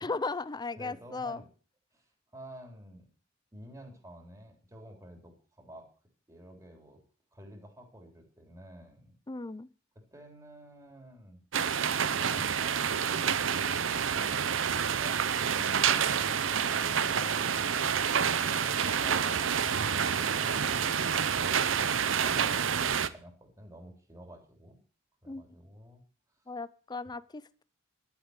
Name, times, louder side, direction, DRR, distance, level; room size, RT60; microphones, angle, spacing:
voice 1, 0.0-1.4 9.3-9.7 25.3-25.5 26.5-27.6, left 3 dB, 20° left, 18 dB, 0.6 m, -36 dB
voice 2, 0.8-1.5 1.9-3.1 3.5-5.9 6.3-7.0 7.3-9.1 10.0-11.4 12.1-20.9 21.5-24.8 25.2-26.0, equal, 15° right, 2 dB, 3.7 m, -50 dB
sound 1, 11.5-23.1, right 7 dB, 70° right, 0.7 m, -28 dB
sound 2, 15.3-21.9, right 3 dB, 45° right, 2.7 m, -45 dB
12.0 x 8.2 x 8.0 m, 0.40 s
head